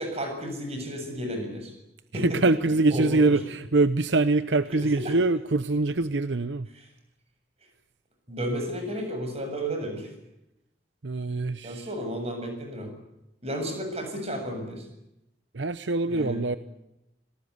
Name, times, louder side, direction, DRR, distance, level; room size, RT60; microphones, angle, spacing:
voice 1, 0.0-1.7 2.1-2.4 2.9-3.3 4.7-5.2 6.7-6.8 8.3-10.1 11.6-12.9 13.4-14.9 16.0-16.4, equal, 35° right, 5 dB, 7.3 m, -32 dB
voice 2, 2.2-6.7 11.0-11.9 15.5-16.6, right 3 dB, 75° right, 13 dB, 0.9 m, -24 dB
26.0 x 19.0 x 9.6 m, 0.87 s
head